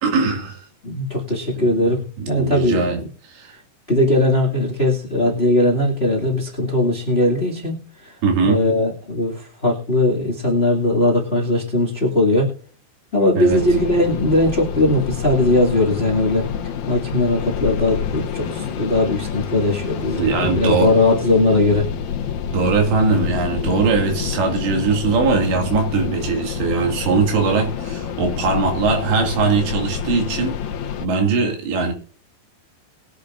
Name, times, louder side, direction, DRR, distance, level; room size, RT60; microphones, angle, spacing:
voice 1, 0.0-0.7 1.6-1.7 2.2-3.0 3.3-3.5 8.2-8.6 13.4-13.6 20.2-20.9 22.5-30.6 31.0-31.9, right 4 dB, 90° right, 4.6 m, -20 dB
voice 2, 0.8-2.9 3.9-7.7 8.0-8.1 8.4-12.5 13.1-16.5 16.9-21.9, left 2 dB, 20° left, 1.6 m, -19 dB
sound 1, 13.5-31.1, left 7 dB, 65° left, 2.7 m, -28 dB
22.0 x 8.4 x 2.6 m
omnidirectional pair, 4.9 m